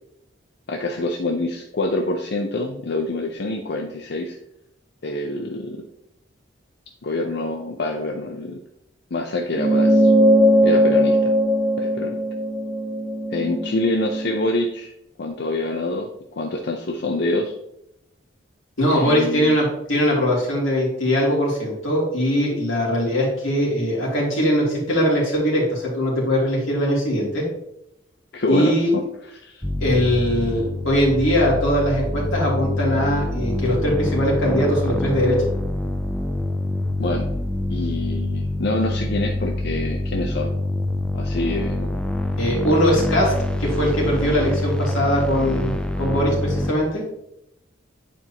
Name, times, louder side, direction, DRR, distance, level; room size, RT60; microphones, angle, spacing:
voice 1, 0.7-4.4 5.0-5.8 7.0-8.6 9.1-10.1 10.6-11.3 11.8-12.2 13.3-14.9 15.2-17.5 18.9-19.6 28.3-29.0 29.3-29.6 37.0-37.3 37.7-40.5 41.1-42.0, left 2 dB, 55° left, 2 dB, 0.6 m, -26 dB
sound 1, 9.5-14.3, equal, 15° right, 1.4 m, -19 dB
voice 2, 18.8-27.4 28.5-28.9 29.8-35.4 42.4-43.3 43.6-47.0, equal, 90° left, -4 dB, 2.7 m, -21 dB
sound 2, 29.6-46.7, left 1 dB, 5° left, 0.3 m, -25 dB
9.1 x 4.4 x 2.8 m, 0.80 s
head